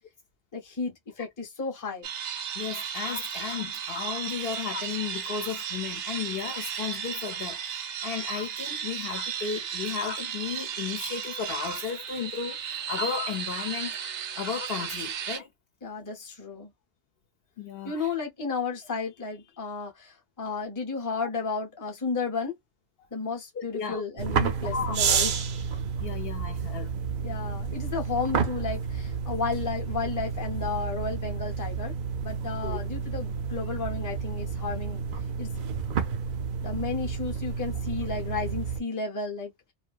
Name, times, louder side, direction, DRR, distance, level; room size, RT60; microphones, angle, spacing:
voice 1, 0.5-2.1 15.8-16.7 17.8-22.5 23.1-25.4 27.2-31.9 32.2-35.0 35.4-35.5 36.6-39.5, left 4 dB, 20° left, 0.7 m, -33 dB
sound 1, 2.0-15.4, right 8 dB, 80° right, 0.9 m, -35 dB
voice 2, 2.5-15.5 17.6-18.1 23.0-23.1 23.6-24.0 24.7-25.0 26.0-26.9 32.6-32.8, left 6 dB, 60° left, 0.8 m, -34 dB
sound 2, 24.2-38.8, right 6 dB, 55° right, 0.6 m, -30 dB
2.6 x 2.3 x 2.4 m
omnidirectional pair, 1.2 m